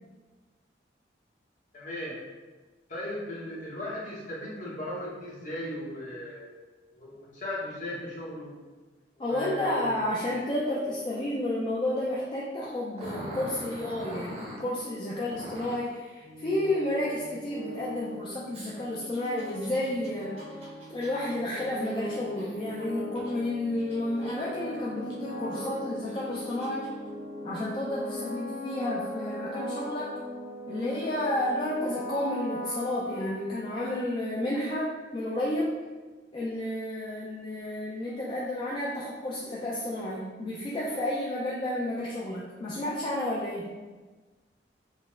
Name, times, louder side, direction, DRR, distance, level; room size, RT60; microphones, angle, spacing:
voice 1, 1.7-2.2 2.9-6.4 6.9-8.5 9.2-9.9, left 1 dB, 45° left, -5 dB, 0.8 m, -37 dB
voice 2, 9.2-20.5 20.9-26.9 27.4-30.2 30.7-35.8 36.3-43.7, left 1 dB, 25° left, -6 dB, 0.3 m, -31 dB
Growling, 12.9-14.6 15.3-15.9 18.5-23.3 23.8-24.6 25.1-25.2 25.9-26.9, equal, 35° right, 0.6 m, -43 dB
sound 1, 16.2-33.8, equal, 70° left, 1.0 m, -39 dB
4.1 x 2.0 x 2.3 m, 1.3 s
head